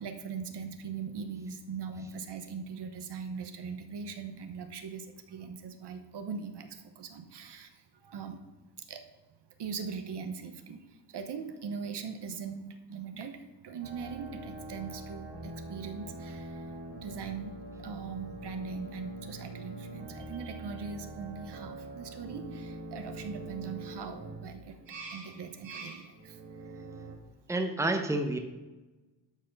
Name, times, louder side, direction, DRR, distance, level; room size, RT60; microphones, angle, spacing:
voice 1, 0.0-8.4 8.8-9.0 9.6-17.5 17.8-24.8 25.1-26.8, right 6 dB, 60° right, 7 dB, 1.0 m, -41 dB
sound 1, 13.8-27.2, right 2 dB, 75° right, 1.9 m, -44 dB
voice 2, 27.5-28.4, right 2 dB, 5° right, 6 dB, 0.8 m, -29 dB
12.5 x 4.3 x 5.3 m, 1.1 s
cardioid pair, 100°, 45 cm